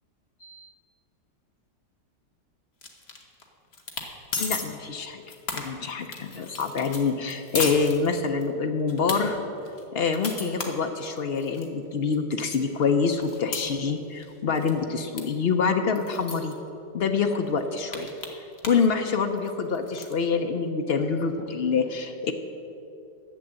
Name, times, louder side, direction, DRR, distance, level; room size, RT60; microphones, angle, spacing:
sound 1, 2.8-3.4 3.7-4.1 4.3-4.6 5.1-8.5 8.9-9.2 9.6-11.7 12.1-12.2 12.5-14.3 14.5-14.8 15.2-15.3 15.5-15.6 15.9-16.5 17.1-17.2 17.5-18.9 19.2-20.1, left 4 dB, 40° left, 1.3 m, -35 dB
voice 1, 4.4-5.2 5.5-9.4 9.9-16.5 16.9-18.1 18.7-22.3, left 5 dB, 85° left, 5 dB, 0.5 m, -26 dB
11.5 x 7.9 x 7.4 m, 2.9 s
omnidirectional pair, 1.9 m